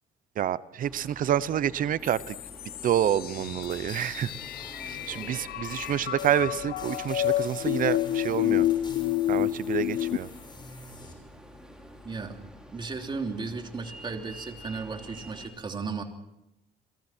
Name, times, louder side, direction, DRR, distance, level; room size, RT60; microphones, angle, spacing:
voice 1, 0.4-2.4 2.8-4.3 4.9-8.7 9.3-10.3, right 10 dB, 55° right, 17 dB, 0.9 m, -28 dB
sound 1, 0.8-15.5, equal, 5° right, 5.6 m, -48 dB
sound 2, 2.0-10.2, left 14 dB, 65° left, 0.9 m, -30 dB
sound 3, 3.2-11.1, left 3 dB, 25° left, 6.2 m, -48 dB
voice 2, 12.0-12.4 12.7-16.0, right 4 dB, 30° right, 4 dB, 3.1 m, -35 dB
29.5 x 22.5 x 4.5 m, 0.87 s
cardioid pair, 110°, 17 cm